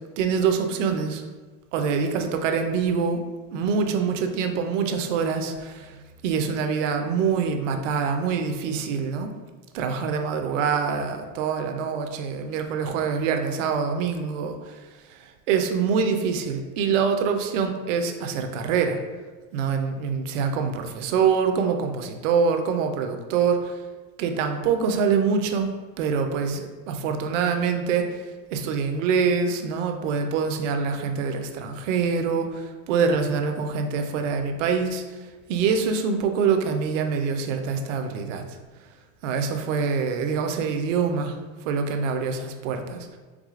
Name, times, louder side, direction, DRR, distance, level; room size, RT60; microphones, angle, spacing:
voice 1, 0.2-1.2 1.7-3.2 3.5-6.0 6.2-9.3 9.7-14.8 15.1-15.2 15.5-19.0 19.5-23.7 24.2-25.7 26.0-28.1 28.5-35.0 35.5-38.4 39.2-41.4 41.7-43.2, right 6 dB, 50° right, 6 dB, 0.5 m, -25 dB
4.8 x 3.4 x 2.4 m, 1.3 s
supercardioid pair, 155°, 48 cm